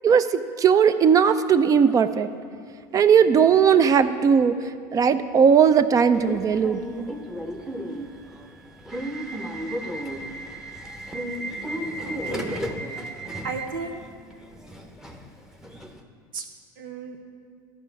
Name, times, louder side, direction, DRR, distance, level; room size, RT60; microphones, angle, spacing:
voice 1, 0.0-2.3 2.9-4.5 4.9-6.8, right 7 dB, 35° right, 12 dB, 0.5 m, -18 dB
Subway metro underground / Alarm, 6.2-16.0, right 1 dB, 5° right, 0.8 m, -34 dB
voice 2, 12.0-12.6 13.0-13.1 13.4-14.0 16.3-16.4 16.8-17.2, right 4 dB, 90° right, 5 dB, 1.0 m, -34 dB
12.5 x 4.8 x 5.9 m, 2.1 s
supercardioid pair, 100°, 11 cm